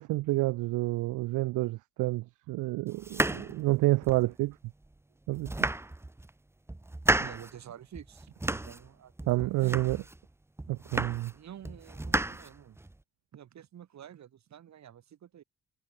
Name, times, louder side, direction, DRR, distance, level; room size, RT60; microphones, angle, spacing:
voice 1, 0.0-4.6 5.3-5.5 9.3-10.0 10.7-11.3, right 19 dB, 85° right, 0.5 m, -29 dB
sound 1, 3.0-4.3 4.8-4.9 5.3-6.3 6.7-7.5 7.9-8.9 9.2-10.2 10.6-11.4 11.6-13.0, right 2 dB, 10° right, 0.9 m, -32 dB
voice 2, 7.2-9.8 11.3-12.8 13.3-15.4, right 10 dB, 65° right, 6.6 m, -49 dB
cardioid pair, 90°, 30 cm